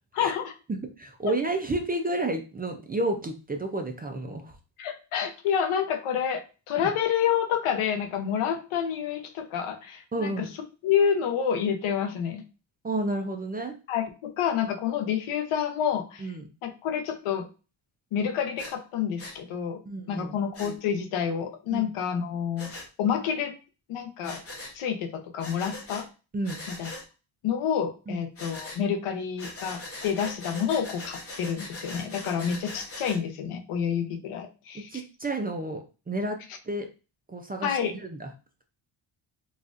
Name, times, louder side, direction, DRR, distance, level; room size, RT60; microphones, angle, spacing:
voice 1, 0.1-0.5 1.2-1.3 4.8-12.4 13.9-16.3 16.6-17.4 18.1-19.8 20.1-22.7 23.0-23.5 23.9-24.4 24.7-26.1 26.7-26.9 27.4-35.0 36.5-36.6 37.6-37.9, left 8 dB, 90° left, 6 dB, 0.8 m, -28 dB
voice 2, 0.7-4.6 10.1-10.5 12.8-13.8 16.2-16.5 19.9-20.3 21.7-21.9 26.3-26.6 28.1-28.3 34.7-36.4 36.7-36.9 37.3-38.3, right 2 dB, 20° right, 4 dB, 0.4 m, -31 dB
Breathing, 18.6-18.7 19.2-19.4 20.5-20.7 22.6-22.9 24.2-24.7 25.4-26.0 26.4-27.0 28.4-28.8 29.4-33.2, left 2 dB, 30° left, 1.0 m, -40 dB
4.0 x 2.4 x 2.4 m, 0.33 s
cardioid pair, 105°, 49 cm